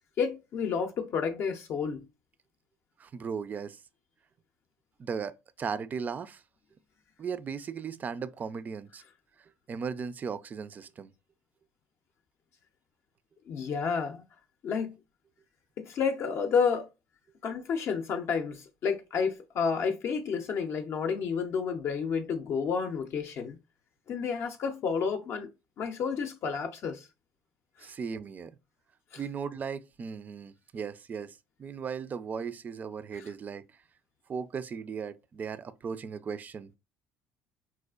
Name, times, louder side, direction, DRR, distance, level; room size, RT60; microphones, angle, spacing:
voice 1, 0.2-2.0 13.5-14.2 14.6-15.0 15.8-16.9 17.4-23.6 24.1-25.5 25.8-27.1 27.8-27.9 29.1-29.2 33.2-33.3, left 6 dB, 55° left, 0.5 m, -30 dB
voice 2, 3.0-3.8 5.0-6.4 7.2-9.0 9.4-11.1 27.8-28.6 29.2-33.7 34.3-36.7, right 6 dB, 35° right, 0.3 m, -37 dB
4.2 x 2.4 x 2.3 m
supercardioid pair, 100°, 5 cm